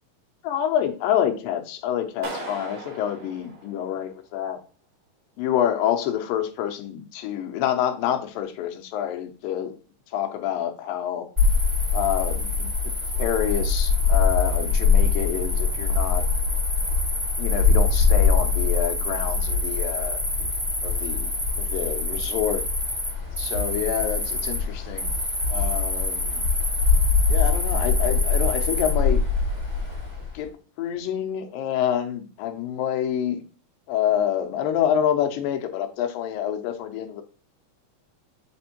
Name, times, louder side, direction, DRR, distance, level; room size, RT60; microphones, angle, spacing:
voice 1, 0.4-4.6 5.4-9.8 10.1-11.3 11.9-12.9 13.2-16.2 17.4-20.2 20.8-21.3 21.6-22.6 23.4-25.1 25.5-26.4 27.3-29.2 30.3-30.5 30.8-33.4 33.9-37.2, left 10 dB, 90° left, 6 dB, 2.4 m, -27 dB
Clapping, 2.2-4.3, right 2 dB, 75° right, 3.3 m, -38 dB
Cricket, 11.4-30.3, left 4 dB, 15° right, 2.0 m, -23 dB
7.6 x 4.3 x 2.9 m, 0.36 s
omnidirectional pair, 4.0 m